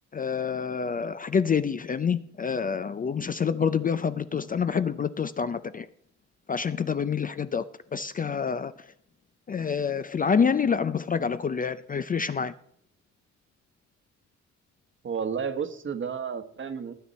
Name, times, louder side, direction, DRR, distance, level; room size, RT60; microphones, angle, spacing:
voice 1, 0.1-5.9 6.5-7.6 7.9-8.9 9.5-12.5, left 6 dB, 30° left, 0.4 m, -27 dB
voice 2, 15.0-16.9, right 6 dB, 40° right, 1.2 m, -31 dB
18.5 x 8.7 x 4.1 m
cardioid pair, 125°, 30 cm